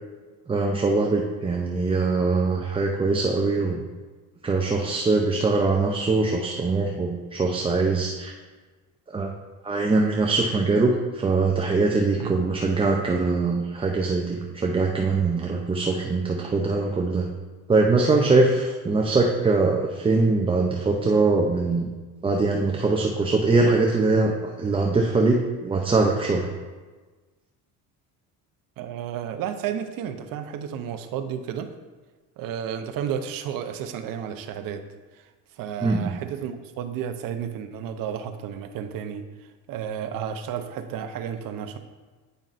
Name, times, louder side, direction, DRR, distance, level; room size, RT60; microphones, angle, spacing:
voice 1, 0.5-3.8 4.4-8.3 9.1-9.3 9.6-17.3 17.7-21.9 22.2-26.5 35.8-36.1, right 3 dB, 15° right, 1 dB, 0.4 m, -22 dB
voice 2, 28.8-31.7 32.4-34.8 35.1-35.3 35.6-41.8, right 8 dB, 65° right, 7 dB, 0.7 m, -32 dB
9.1 x 5.2 x 2.5 m, 1.3 s
cardioid pair, 110°, 37 cm